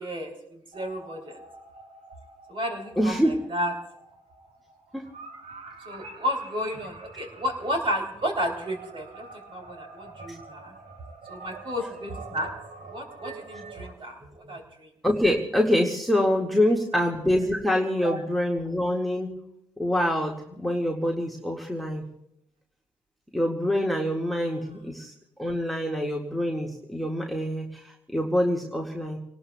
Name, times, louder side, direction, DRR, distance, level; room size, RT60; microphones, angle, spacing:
voice 1, 0.0-1.4 2.5-3.7 5.9-10.8 11.3-12.5 12.8-14.9 18.0-18.2 24.5-24.8, equal, 35° right, 2 dB, 3.5 m, -32 dB
sound 1, 0.7-13.9, right 3 dB, 50° right, 2.2 m, -46 dB
voice 2, 3.0-3.3 4.9-5.0 10.3-10.4 15.0-19.4 19.8-22.1 23.3-25.1 25.4-29.2, left 1 dB, ahead, 0 dB, 1.9 m, -25 dB
30.0 x 18.5 x 2.3 m, 0.79 s
hypercardioid pair, 45°, 15 cm